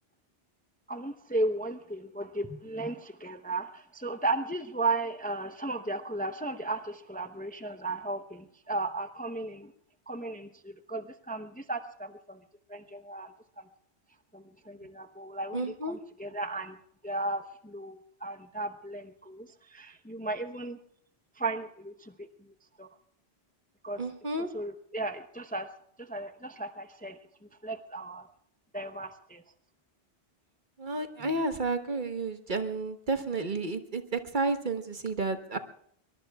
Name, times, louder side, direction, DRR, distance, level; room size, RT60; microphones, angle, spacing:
voice 1, 0.9-9.7 10.1-12.4 12.7-13.3 14.3-16.8 17.0-20.8 21.4-22.1 22.8-22.9 23.8-24.0 24.5-25.7 26.0-27.2 27.6-28.3 28.7-29.4, right 2 dB, 10° left, 8 dB, 0.7 m, -35 dB
voice 2, 15.5-16.0 24.0-24.5 30.8-35.6, right 3 dB, 50° right, 8 dB, 1.3 m, -31 dB
23.0 x 22.0 x 2.4 m, 0.66 s
omnidirectional pair, 1.1 m